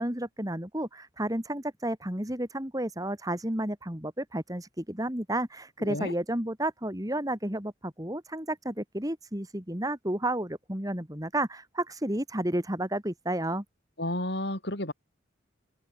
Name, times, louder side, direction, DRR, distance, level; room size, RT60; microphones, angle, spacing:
voice 1, 0.0-13.6, right 1 dB, 20° right, 2.8 m, -31 dB
voice 2, 5.8-6.1 14.0-14.9, left 1 dB, 55° left, 6.0 m, -31 dB
head